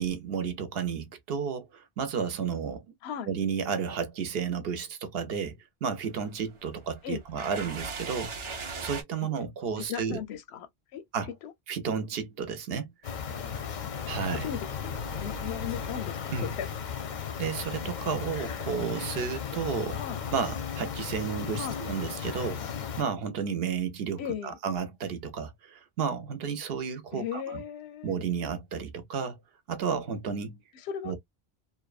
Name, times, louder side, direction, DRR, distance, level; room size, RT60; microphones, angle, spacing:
voice 1, 0.0-2.9 3.3-10.2 11.1-11.3 11.7-12.9 14.1-14.5 16.3-16.5 17.4-20.0 20.3-22.6 23.0-27.6 28.0-29.4 29.7-30.6 31.0-31.2, right 6 dB, 75° right, 0.8 m, -32 dB
sound 1, 5.9-9.0, right 4 dB, 45° right, 0.4 m, -39 dB
voice 2, 9.8-11.0 11.4-11.5 14.3-16.7 19.9-20.2 21.5-21.8 24.2-24.6 27.1-28.2 30.7-31.2, left 8 dB, 85° left, 0.8 m, -37 dB
sound 2, 13.0-23.0, left 7 dB, 55° left, 0.6 m, -35 dB
2.6 x 2.1 x 2.3 m
omnidirectional pair, 1.0 m